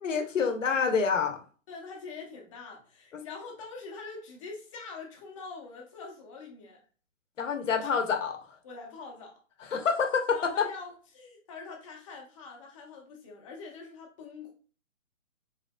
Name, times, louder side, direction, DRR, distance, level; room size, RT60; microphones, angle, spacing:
voice 1, 0.0-1.4 3.1-3.2 7.4-8.4 9.7-10.7, left 5 dB, 70° left, 1.0 m, -27 dB
voice 2, 1.7-6.8 7.8-7.9 8.6-9.4 10.3-14.5, left 4 dB, 25° left, 0.9 m, -44 dB
5.0 x 3.3 x 2.3 m
hypercardioid pair, 150°, 40 cm